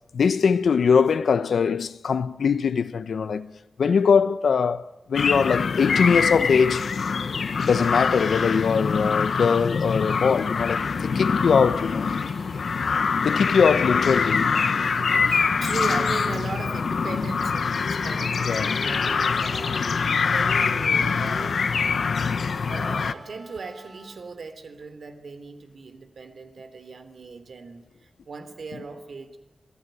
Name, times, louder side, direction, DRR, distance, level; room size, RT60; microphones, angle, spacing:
voice 1, 0.1-3.5 3.8-7.0 7.6-12.1 13.2-14.6 18.5-18.8, left 6 dB, 85° left, 1.0 m, -22 dB
sound 1, 5.1-23.1, left 5 dB, 65° left, 1.2 m, -24 dB
sound 2, 6.2-24.2, right 2 dB, 40° right, 5.0 m, -49 dB
voice 2, 14.8-21.7 22.7-29.4, right 4 dB, 60° right, 3.6 m, -38 dB
27.5 x 20.0 x 9.4 m
wide cardioid pair, 160°, 0 cm